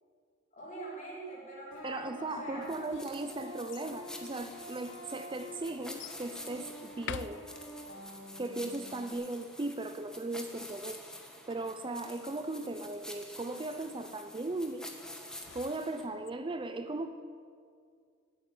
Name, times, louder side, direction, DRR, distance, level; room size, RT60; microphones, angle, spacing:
voice 1, 0.5-2.7, right 1 dB, 40° left, -5 dB, 4.7 m, -44 dB
sound 1, 1.7-9.1, equal, 80° left, 2.9 m, -48 dB
voice 2, 1.8-7.4 8.4-11.0 11.5-14.9 15.5-17.1, right 2 dB, 25° right, 9 dB, 0.5 m, -37 dB
sound 2, 2.6-3.9 4.7-4.8 6.0-6.3 6.9-8.0 15.0-16.3, left 8 dB, 65° left, 0.4 m, -46 dB
sound 3, 2.6-16.0, left 1 dB, 5° left, 1.4 m, -48 dB
13.0 x 9.0 x 9.3 m, 2.2 s
head